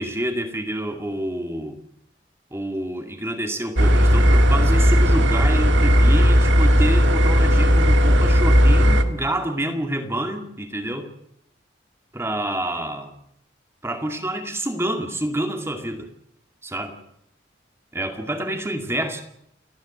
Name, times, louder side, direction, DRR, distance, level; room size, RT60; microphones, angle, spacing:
voice 1, 0.0-1.8 2.5-11.1 12.1-13.1 13.8-16.1 16.6-17.0 17.9-19.2, right 1 dB, 15° right, 5 dB, 2.2 m, -28 dB
sound 1, 3.8-9.0, equal, 85° right, 1.8 m, -15 dB
29.5 x 10.5 x 8.8 m, 0.76 s
head